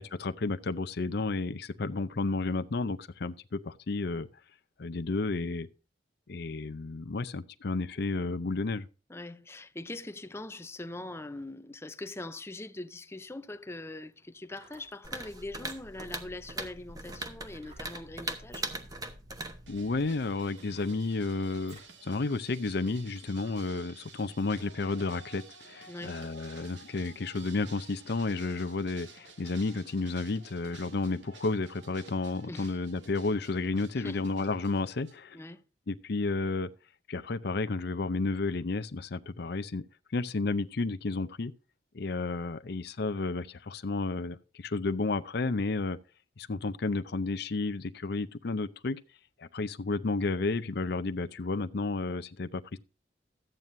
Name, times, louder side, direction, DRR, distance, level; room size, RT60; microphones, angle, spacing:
voice 1, 0.0-4.3 4.8-5.7 6.3-8.9 19.7-35.4 35.9-36.7 37.1-39.8 40.1-41.5 41.9-46.0 46.4-49.0 49.4-52.8, left 3 dB, 65° left, 0.6 m, -32 dB
voice 2, 9.1-18.7 25.9-26.2 32.5-32.8 34.0-34.3 35.3-35.6, left 2 dB, 15° left, 0.6 m, -42 dB
sound 1, 14.4-15.0 15.5-16.1 17.6-17.9 18.4-18.7 19.5-19.6 20.1-22.0 22.4-22.5, right 2 dB, 35° right, 3.6 m, -57 dB
sound 2, 15.0-20.2, right 2 dB, 20° right, 1.1 m, -40 dB
sound 3, 19.7-35.2, right 4 dB, 85° right, 2.1 m, -53 dB
13.5 x 9.0 x 2.7 m
head